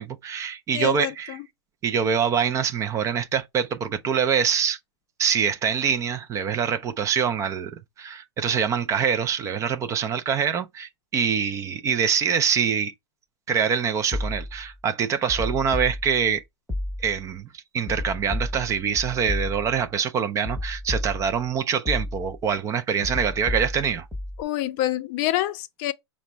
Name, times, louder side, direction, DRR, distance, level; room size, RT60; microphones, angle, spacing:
voice 1, 0.0-1.4 1.8-4.8 5.2-7.7 8.0-12.9 13.5-16.4 17.0-24.1, right 7 dB, 20° right, 0.3 m, -25 dB
voice 2, 0.7-1.4 24.4-25.9, left 14 dB, 45° left, 0.5 m, -27 dB
sound 1, 14.1-14.7 15.3-16.4 16.7-17.3 17.9-19.9 20.4-21.5 21.9-22.5 23.0-24.4, left 1 dB, ahead, 0.8 m, -32 dB
4.9 x 2.1 x 4.2 m
hypercardioid pair, 130°, 15 cm